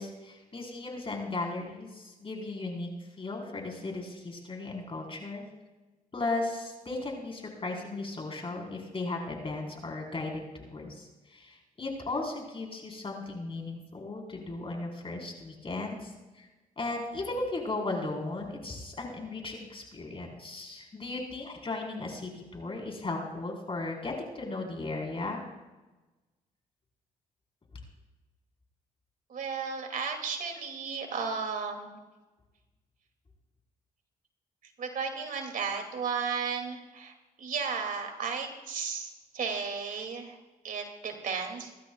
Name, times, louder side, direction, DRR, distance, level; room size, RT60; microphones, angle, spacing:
voice 1, 0.0-2.9 3.2-5.4 6.1-16.5 16.8-25.4, left 2 dB, 35° left, 1 dB, 4.3 m, -36 dB
voice 2, 29.3-32.0 34.8-40.4 40.6-41.7, right 5 dB, 65° right, 3 dB, 2.6 m, -34 dB
26.0 x 12.0 x 2.4 m, 1.1 s
cardioid pair, 70°, 15 cm